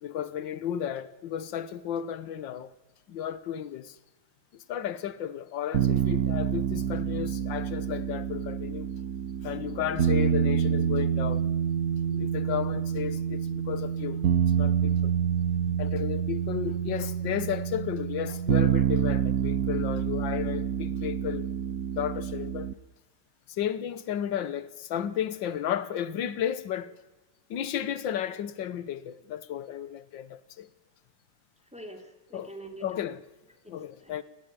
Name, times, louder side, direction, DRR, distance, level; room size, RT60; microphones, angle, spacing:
voice 1, 0.0-2.7 3.1-4.0 4.5-8.9 9.4-11.4 12.1-14.2 14.6-15.1 15.5-21.5 22.0-22.7 23.5-26.9 27.5-30.7 32.3-32.5 32.8-33.2 33.7-34.2, left 10 dB, 90° left, 1.7 m, -33 dB
sound 1, 5.7-22.7, right 9 dB, 60° right, 1.1 m, -27 dB
voice 2, 31.6-33.0 33.5-34.2, right 1 dB, 5° right, 2.9 m, -46 dB
19.0 x 14.5 x 9.7 m
omnidirectional pair, 2.0 m